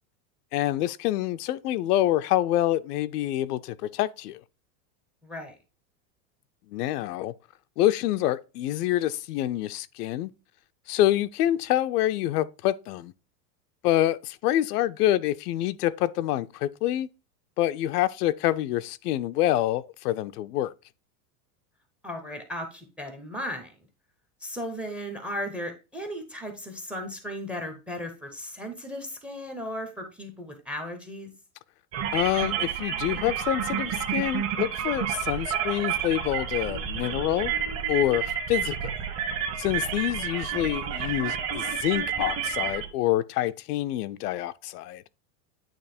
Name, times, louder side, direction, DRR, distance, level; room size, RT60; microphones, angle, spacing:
voice 1, 0.5-4.4 6.7-7.3 7.8-10.3 10.9-13.1 13.8-17.1 17.6-20.7 32.1-37.5 37.9-38.9 39.6-45.0, left 13 dB, 75° left, 0.6 m, -26 dB
voice 2, 5.2-5.6 22.0-23.7 24.4-31.3, equal, 5° right, 0.6 m, -36 dB
sound 1, 31.9-42.9, right 8 dB, 35° right, 1.2 m, -30 dB
8.9 x 3.0 x 4.2 m
supercardioid pair, 155°, 47 cm